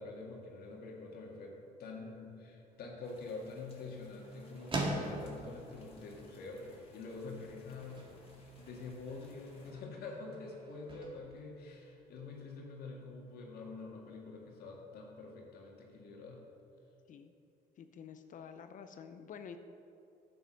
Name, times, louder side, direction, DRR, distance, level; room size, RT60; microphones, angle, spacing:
voice 1, 0.0-8.0 8.6-16.4, left 3 dB, 65° left, -1 dB, 2.0 m, -46 dB
sound 1, 2.7-12.4, right 1 dB, 30° right, 2.0 m, -45 dB
sound 2, 3.0-9.7, left 2 dB, 35° left, 2.3 m, -62 dB
voice 2, 17.8-19.6, left 7 dB, 50° left, 9 dB, 0.6 m, -49 dB
10.0 x 7.9 x 6.4 m, 2.8 s
cardioid pair, 110°, 17 cm